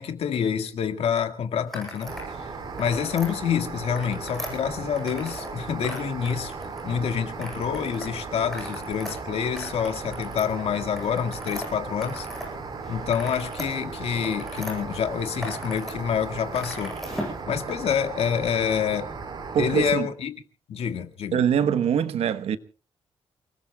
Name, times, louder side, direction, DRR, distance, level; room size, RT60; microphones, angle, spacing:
voice 1, 0.0-2.5 2.8-6.5 6.8-12.3 12.9-19.1 19.5-20.4 20.7-21.4, left 8 dB, 75° left, 1.8 m, -27 dB
sound 1, 1.7-2.3 2.6-3.3 3.8-5.5 5.8-7.0 7.4-8.1 8.4-12.5 12.8-14.7 15.2-15.9 16.2-17.4, left 1 dB, 5° left, 7.8 m, -38 dB
sound 2, 2.0-19.9, right 4 dB, 45° right, 4.4 m, -36 dB
voice 2, 19.5-20.1 21.3-22.6, right 8 dB, 80° right, 1.1 m, -23 dB
29.0 x 20.0 x 2.3 m
wide cardioid pair, 170°, 10 cm